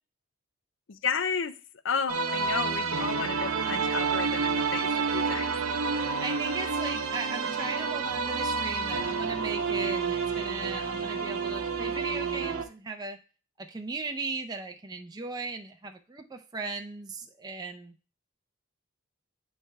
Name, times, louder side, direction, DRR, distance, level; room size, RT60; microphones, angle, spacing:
voice 1, 0.9-1.5 1.8-5.5 5.9-6.0, left 5 dB, 60° left, 13 dB, 0.5 m, -32 dB
sound 1, 2.1-12.6, right 5 dB, 85° right, 0.7 m, -29 dB
voice 2, 6.2-13.2 13.6-17.9, right 3 dB, 20° right, 4 dB, 0.4 m, -37 dB
9.8 x 3.3 x 3.2 m, 0.36 s
head